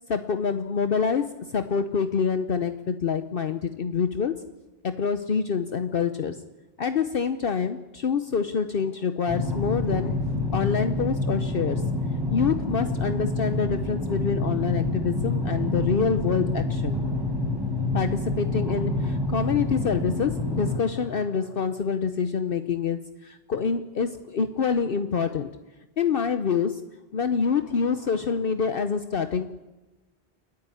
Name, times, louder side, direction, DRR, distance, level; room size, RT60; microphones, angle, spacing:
voice 1, 0.1-4.4 4.8-6.4 6.8-10.1 10.5-11.8 12.3-17.0 17.9-25.5 26.0-26.8 27.1-29.5, left 6 dB, 60° left, 9 dB, 1.0 m, -26 dB
sound 1, 9.3-20.8, left 2 dB, ahead, 5.9 m, -27 dB
29.0 x 9.7 x 9.7 m, 1.1 s
omnidirectional pair, 1.1 m